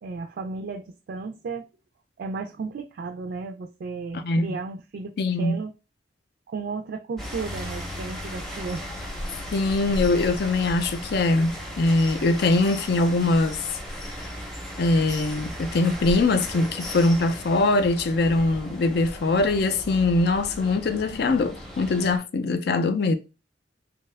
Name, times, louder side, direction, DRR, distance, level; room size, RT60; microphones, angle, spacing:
voice 1, 0.0-1.7 2.2-5.7 6.5-8.9, right 4 dB, 60° right, 0.3 m, -34 dB
voice 2, 4.1-4.6 5.2-5.6 9.5-13.6 14.8-23.1, left 2 dB, 60° left, 0.4 m, -22 dB
sound 1, 7.2-22.2, equal, ahead, 0.6 m, -36 dB
2.7 x 2.3 x 3.2 m
head